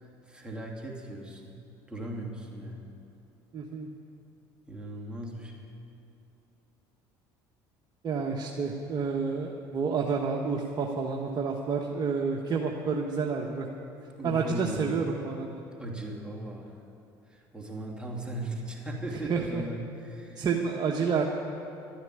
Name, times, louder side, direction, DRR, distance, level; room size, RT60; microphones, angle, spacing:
voice 1, 0.0-1.6 1.9-2.9 4.7-5.7 14.2-15.0 15.8-16.8 17.3-20.5, right 1 dB, 10° right, -2 dB, 2.8 m, -38 dB
voice 2, 3.5-3.9 8.0-13.7 14.2-15.6 19.3-19.6 20.4-21.2, right 5 dB, 40° right, 0 dB, 1.3 m, -29 dB
13.0 x 10.5 x 9.5 m, 2.7 s
supercardioid pair, 85°, 10 cm